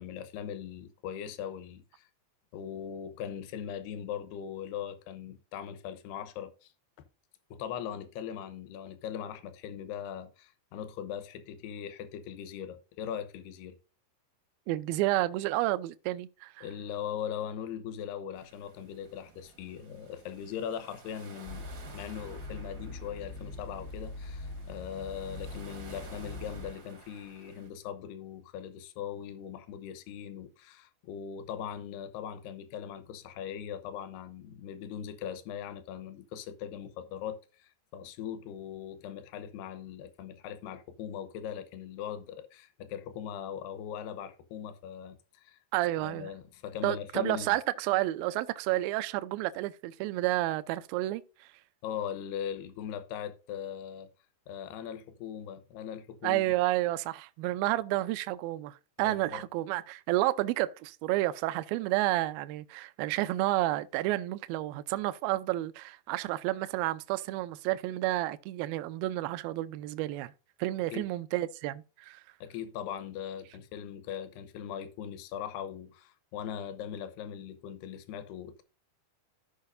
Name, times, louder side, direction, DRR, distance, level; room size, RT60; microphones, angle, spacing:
voice 1, 0.0-2.1 2.5-6.7 7.5-13.8 16.6-45.6 46.0-47.6 51.8-54.1 54.5-56.4 59.0-59.4 70.9-71.1 72.4-78.6, left 9 dB, 75° left, 2.8 m, -40 dB
voice 2, 14.7-16.7 45.7-46.3 46.8-51.5 56.2-70.3 70.6-72.2, right 16 dB, 85° right, 2.1 m, -30 dB
sound 1, 18.3-27.7, right 4 dB, 60° right, 0.9 m, -54 dB
sound 2, 21.5-26.7, left 2 dB, 50° left, 1.0 m, -42 dB
15.0 x 5.6 x 2.6 m
omnidirectional pair, 4.9 m